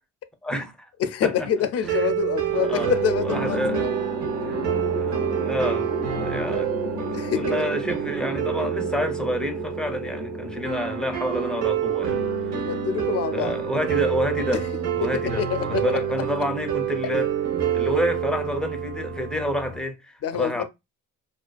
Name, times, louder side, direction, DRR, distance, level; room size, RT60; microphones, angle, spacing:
voice 1, 0.4-0.9 1.2-1.5 1.9-2.1 2.5-2.9 3.2-3.9 4.4-4.6 4.9-12.2 12.5-12.7 13.3-14.6 14.9-17.3 17.7-20.6, equal, 5° left, 0.5 m, -29 dB
voice 2, 1.0-3.9 7.1-7.5 12.5-13.5 14.5-14.6 15.0-16.0 17.0-17.1 20.2-20.6, left 8 dB, 55° left, 0.4 m, -26 dB
sound 1, 1.8-19.8, right 8 dB, 65° right, 0.7 m, -28 dB
sound 2, 2.6-14.9, equal, 35° right, 0.9 m, -35 dB
2.5 x 2.2 x 2.3 m
cardioid pair, 90°, 30 cm